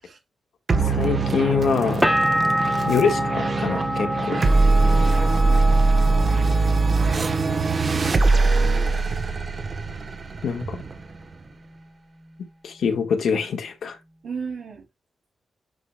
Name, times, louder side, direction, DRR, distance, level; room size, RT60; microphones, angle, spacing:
voice 1, 0.7-2.1 2.9-4.4 10.4-10.8 12.6-14.0, left 6 dB, 80° left, 1.5 m, -24 dB
sound 1, 0.7-11.5, right 3 dB, 35° right, 0.9 m, -21 dB
sound 2, 2.0-7.7 8.0-8.7, equal, ahead, 0.9 m, -27 dB
voice 2, 2.4-2.9 4.3-5.2 5.5-5.9 14.2-14.9, right 5 dB, 80° right, 2.5 m, -38 dB
9.2 x 4.9 x 2.2 m
wide cardioid pair, 165°, 0 cm